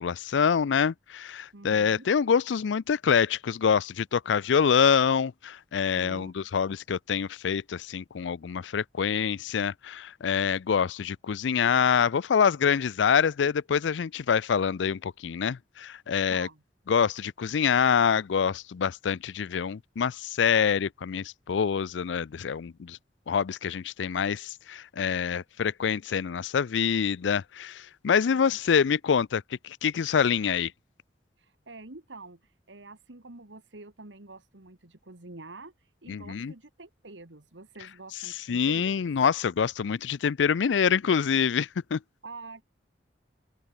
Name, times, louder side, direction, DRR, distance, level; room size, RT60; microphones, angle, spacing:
voice 1, 0.0-16.5 16.9-23.0 23.3-30.7 36.1-36.5 38.2-42.0, left 7 dB, 80° left, 0.4 m, -26 dB
voice 2, 1.5-2.1 5.9-6.5 16.3-16.6 28.2-28.6 31.4-39.1 42.2-42.6, right 3 dB, 90° right, 2.1 m, -47 dB
open air
head